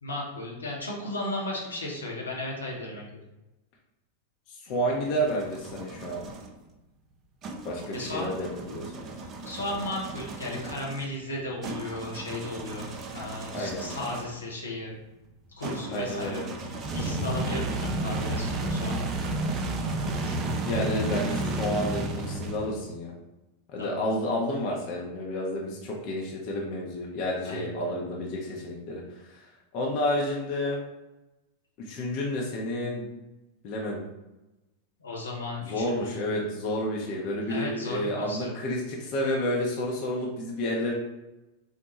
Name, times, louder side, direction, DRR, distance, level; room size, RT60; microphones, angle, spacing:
voice 1, 0.0-3.1 7.9-8.3 9.5-12.9 13.1-15.0 15.6-16.4 16.9-19.1 23.8-24.0 27.4-27.9 35.0-36.4 37.5-38.5, left 2 dB, 75° left, -3 dB, 0.8 m, -35 dB
voice 2, 4.5-6.3 7.6-9.1 13.5-13.9 15.9-16.5 20.7-23.1 23.7-29.0 29.7-30.8 31.8-33.1 33.6-34.0 35.6-40.9, equal, 40° left, -2 dB, 0.6 m, -30 dB
sound 1, 4.7-6.5 7.4-14.4 15.6-22.9, right 2 dB, 30° right, 0.4 m, -33 dB
4.2 x 2.1 x 3.0 m, 1.0 s
figure-of-eight pair, 90°, 0 cm